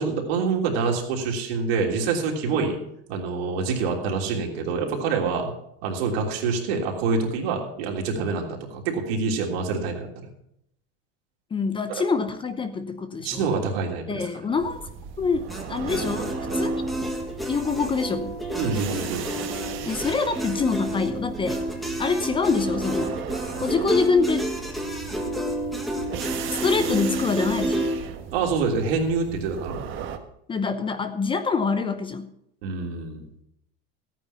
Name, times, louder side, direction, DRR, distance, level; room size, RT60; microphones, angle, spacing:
voice 1, 0.0-2.8 3.1-5.5 5.8-10.3 11.9-12.0 13.2-14.2 18.6-19.2 28.3-29.8 32.6-33.3, right 4 dB, 70° right, 1 dB, 3.3 m, -26 dB
voice 2, 11.5-13.5 14.1-14.9 15.2-16.7 17.0-17.1 17.5-18.4 19.8-21.6 22.0-23.2 23.6-24.5 26.5-27.9 30.5-32.3, left 4 dB, 15° left, 10 dB, 0.7 m, -25 dB
sound 1, 14.6-30.2, right 8 dB, 40° right, 1.4 m, -37 dB
sound 2, 15.5-28.0, right 1 dB, ahead, 1.7 m, -30 dB
14.0 x 9.3 x 5.6 m, 0.75 s
supercardioid pair, 135°, 31 cm